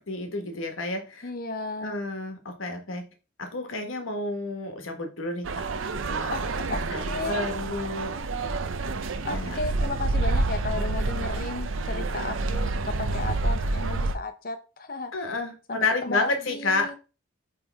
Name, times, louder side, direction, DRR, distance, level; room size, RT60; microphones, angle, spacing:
voice 1, 0.1-1.3 1.8-3.0 3.4-5.6 6.1-6.4 6.7-8.1 9.3-9.6 15.1-17.0, left 3 dB, 80° left, 1.4 m, -30 dB
voice 2, 1.2-2.0 6.3-7.5 9.2-15.1 15.7-16.9, left 3 dB, 45° left, 0.8 m, -34 dB
sound 1, 5.4-14.2, right 3 dB, 75° right, 0.6 m, -28 dB
8.8 x 3.5 x 3.4 m
head